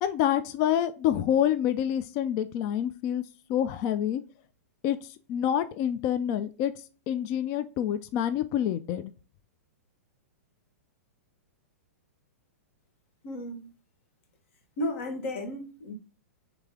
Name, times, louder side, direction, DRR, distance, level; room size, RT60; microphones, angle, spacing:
voice 1, 0.0-3.2 3.5-4.2 4.8-6.7 7.1-9.1, left 10 dB, 40° left, 0.3 m, -27 dB
voice 2, 13.2-13.7 14.8-15.9, left 1 dB, 55° left, 1.3 m, -33 dB
3.5 x 3.2 x 3.5 m
hypercardioid pair, 120°, 8 cm